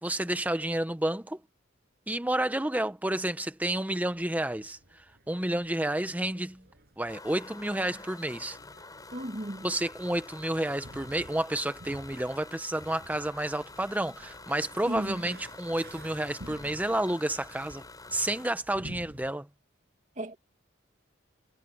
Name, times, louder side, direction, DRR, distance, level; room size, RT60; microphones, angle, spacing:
voice 1, 0.0-1.4 2.1-6.6 7.0-8.6 9.6-17.8 18.1-19.5, right 1 dB, 10° right, 0.7 m, -30 dB
sound 1, 4.1-19.3, right 1 dB, 55° right, 8.0 m, -52 dB
sound 2, 7.1-18.5, left 3 dB, 20° left, 6.9 m, -48 dB
voice 2, 9.1-9.7 14.9-15.2 20.2-20.4, right 1 dB, 40° right, 2.3 m, -34 dB
head